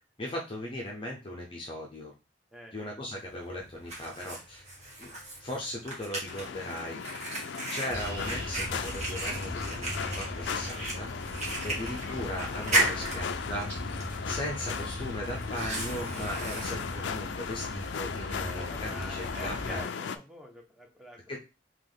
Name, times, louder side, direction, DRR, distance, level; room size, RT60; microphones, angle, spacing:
voice 1, 0.2-2.1 2.7-4.6 5.0-5.1 5.4-7.0 7.7-11.1 11.6-13.7 14.2-19.8 21.3-21.4, left 1 dB, 25° left, -1 dB, 0.6 m, -38 dB
Fire, 3.2-18.1, right 2 dB, 35° right, 1.3 m, -36 dB
sound 1, 6.3-20.2, left 6 dB, 70° left, 0.4 m, -37 dB
sound 2, 7.9-19.8, left 1 dB, 55° right, 2.2 m, -39 dB
voice 2, 12.6-13.2 18.4-21.4, equal, ahead, 1 dB, 0.8 m, -47 dB
3.5 x 2.9 x 3.8 m, 0.29 s
head